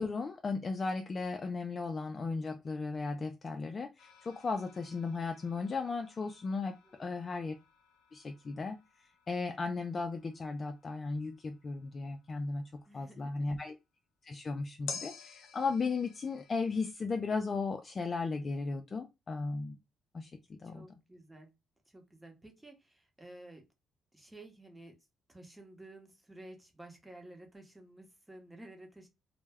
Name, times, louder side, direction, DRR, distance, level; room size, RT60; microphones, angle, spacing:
voice 1, 0.0-7.5 8.1-8.8 9.3-13.8 14.2-19.8 20.1-20.9, left 4 dB, 35° left, 0.3 m, -36 dB
sound 1, 4.0-13.4 14.9-16.9, left 6 dB, 85° left, 0.6 m, -52 dB
voice 2, 6.8-7.3 12.9-13.5 20.6-21.5 21.9-23.6 24.1-25.0 25.3-29.1, right 1 dB, 10° right, 0.8 m, -53 dB
2.1 x 2.1 x 3.4 m
cardioid pair, 90°, 0 cm